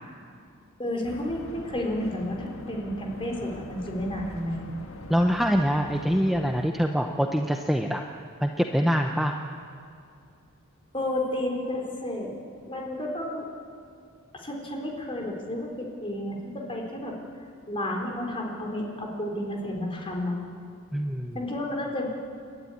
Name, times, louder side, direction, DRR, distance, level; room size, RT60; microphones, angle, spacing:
voice 1, 0.8-4.6 10.9-12.4 12.7-13.4 14.3-17.2 17.7-20.4 21.3-22.1, left 1 dB, 25° left, 0 dB, 3.7 m, -31 dB
sound 1, 1.0-6.7, left 1 dB, 65° left, 1.7 m, -43 dB
voice 2, 5.1-8.0 8.4-9.4 20.9-21.4, equal, ahead, 2 dB, 0.8 m, -24 dB
30.0 x 12.5 x 9.7 m, 2.5 s
head